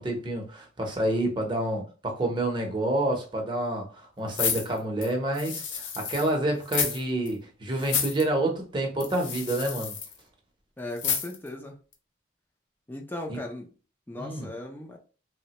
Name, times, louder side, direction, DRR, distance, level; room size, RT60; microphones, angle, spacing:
voice 1, 0.0-10.0 13.3-13.4 14.2-14.5, right 1 dB, 25° right, 0.7 m, -28 dB
sound 1, 4.3-6.3 6.6-7.0 7.3-7.4 7.8-8.2 9.0-10.1 11.0-11.5 11.9-12.0, left 7 dB, 80° left, 0.6 m, -30 dB
voice 2, 10.8-11.8 12.9-13.7 14.1-15.0, left 1 dB, 10° left, 0.5 m, -37 dB
3.3 x 2.1 x 2.8 m
head